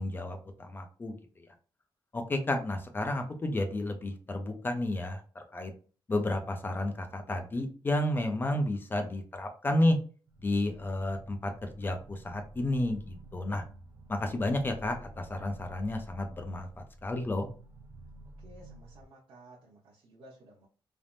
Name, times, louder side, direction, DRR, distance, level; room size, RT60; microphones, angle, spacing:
voice 1, 0.0-1.5 2.1-5.7 6.1-10.0 10.4-13.6 14.1-17.5, left 1 dB, 25° left, 6 dB, 0.4 m, -31 dB
sound 1, 10.3-19.1, right 2 dB, 40° right, 0.5 m, -51 dB
voice 2, 18.4-20.7, right 1 dB, 70° right, -6 dB, 0.8 m, -55 dB
3.3 x 2.0 x 2.5 m, 0.39 s
wide cardioid pair, 150°, 9 cm